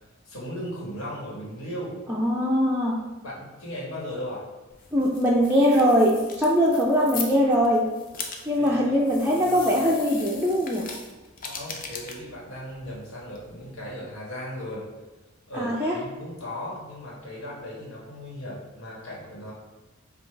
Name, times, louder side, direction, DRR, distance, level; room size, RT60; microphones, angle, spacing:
voice 1, 0.2-2.0 3.2-4.4 8.6-9.0 11.4-14.8 15.5-19.5, equal, 85° left, -5 dB, 1.4 m, -37 dB
voice 2, 2.1-3.0 4.9-7.9 8.5-10.8 15.5-15.9, equal, 10° right, -5 dB, 0.4 m, -21 dB
sound 1, 4.7-13.9, left 5 dB, 45° left, 0.5 m, -40 dB
5.3 x 2.4 x 3.2 m, 1.1 s
head